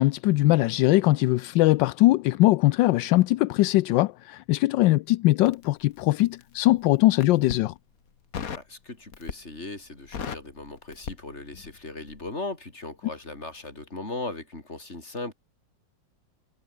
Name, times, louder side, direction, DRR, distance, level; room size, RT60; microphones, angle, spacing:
voice 1, 0.0-7.7, left 17 dB, 80° left, 1.2 m, -21 dB
Crackle, 5.4-6.5 7.1-7.7 8.3-8.7 9.1-9.6 9.9-11.8 12.1-12.3, left 7 dB, 50° left, 1.8 m, -37 dB
voice 2, 8.6-15.3, left 2 dB, 35° left, 4.6 m, -38 dB
omnidirectional pair, 2.0 m